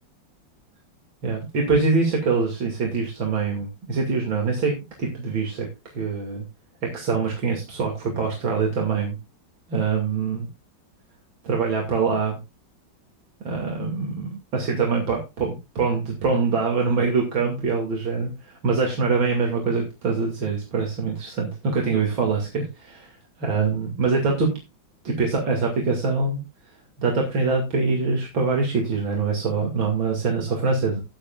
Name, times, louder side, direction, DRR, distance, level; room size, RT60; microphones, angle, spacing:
voice 1, 1.2-4.7 5.0-5.7 5.9-6.4 6.9-9.2 9.7-10.5 11.4-12.4 13.4-24.5 25.0-26.4 27.0-31.0, right 4 dB, 90° right, 0 dB, 3.3 m, -24 dB
15.0 x 9.6 x 2.5 m, 0.25 s
omnidirectional pair, 2.1 m